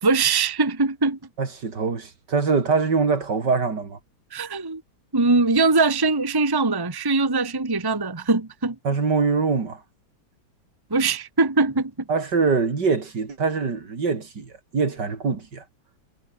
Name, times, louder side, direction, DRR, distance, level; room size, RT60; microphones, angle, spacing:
voice 1, 0.0-1.2 4.3-4.8 5.1-8.7 10.9-11.9, right 3 dB, 15° right, 1.3 m, -21 dB
voice 2, 1.4-4.0 8.8-9.8 12.1-15.6, right 4 dB, 60° right, 3.4 m, -23 dB
omnidirectional pair, 2.1 m